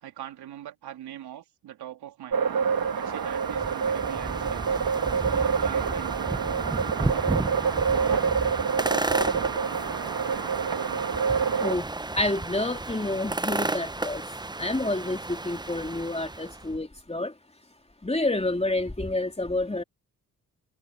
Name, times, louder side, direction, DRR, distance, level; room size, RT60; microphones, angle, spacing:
voice 1, 0.0-2.6 2.9-4.8 5.2-6.4, right 11 dB, 85° right, 3.4 m, -42 dB
sound 1, 2.3-11.8, right 6 dB, 65° right, 1.9 m, -27 dB
sound 2, 2.6-16.7, right 2 dB, 10° right, 0.7 m, -33 dB
voice 2, 11.6-14.3 14.5-17.4 18.0-19.8, left 2 dB, 15° left, 3.5 m, -29 dB
supercardioid pair, 45°, 38 cm